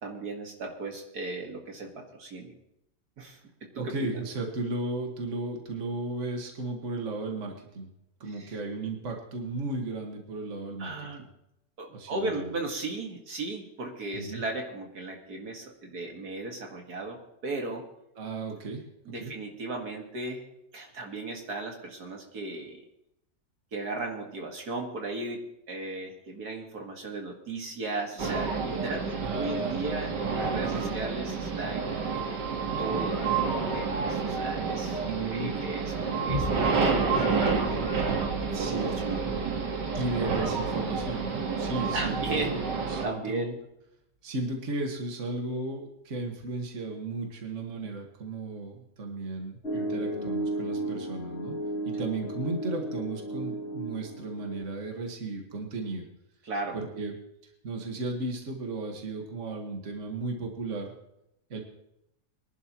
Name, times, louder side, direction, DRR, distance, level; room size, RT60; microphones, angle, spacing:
voice 1, 0.0-2.5 3.2-3.9 8.3-8.6 10.8-11.2 11.8-17.8 19.1-20.4 20.7-22.8 23.7-32.4 32.8-33.2 33.4-38.1 38.4-39.3 39.9-40.0 41.9-42.6 43.0-43.4 49.7-49.9 56.4-56.8, right 2 dB, 65° right, 1 dB, 2.3 m, -36 dB
voice 2, 3.8-7.9 8.2-10.9 11.9-12.5 14.1-14.4 18.2-18.8 19.2-19.3 29.2-30.0 30.5-30.9 35.1-35.5 38.5-38.9 39.9-43.5 44.2-51.6 51.9-56.1 56.7-57.2 57.6-60.9 61.5-61.6, right 3 dB, 45° right, 2 dB, 2.0 m, -35 dB
sound 1, 28.2-43.1, right 5 dB, 90° right, 2.3 m, -29 dB
Boom, 36.3-43.2 43.7-43.8, left 1 dB, 25° right, 2.0 m, -41 dB
Piano, 49.6-54.6, right 1 dB, 40° left, 3.3 m, -34 dB
24.0 x 11.0 x 3.0 m, 0.83 s
omnidirectional pair, 1.8 m